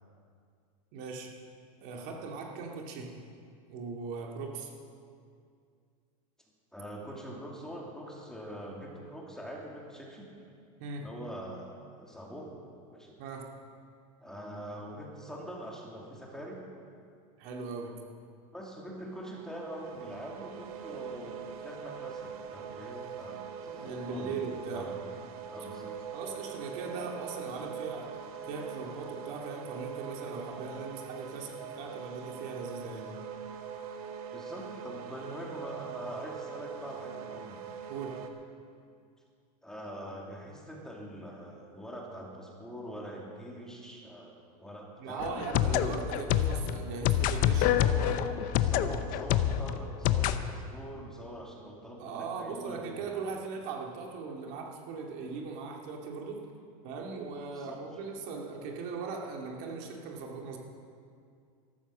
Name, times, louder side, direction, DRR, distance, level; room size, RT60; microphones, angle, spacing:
voice 1, 0.9-1.3 1.8-3.1 3.7-4.7 10.8-11.1 13.2-13.5 17.4-18.0 23.8-24.9 26.1-28.1 28.5-33.1 37.9-38.2 45.0-48.2 52.0-56.5 56.8-60.6, right 4 dB, 55° right, 0 dB, 2.4 m, -39 dB
voice 2, 6.7-10.3 11.0-12.5 12.9-13.1 14.2-16.6 18.5-24.4 24.7-25.0 25.5-26.0 34.3-37.6 39.6-45.3 47.5-53.4 57.6-57.8, equal, 5° left, -2 dB, 2.6 m, -43 dB
sound 1, 19.1-38.3, right 7 dB, 75° right, 1.7 m, -42 dB
sound 2, 45.2-50.4, left 11 dB, 45° left, 0.8 m, -27 dB
14.0 x 13.0 x 6.2 m, 2.3 s
supercardioid pair, 130°, 19 cm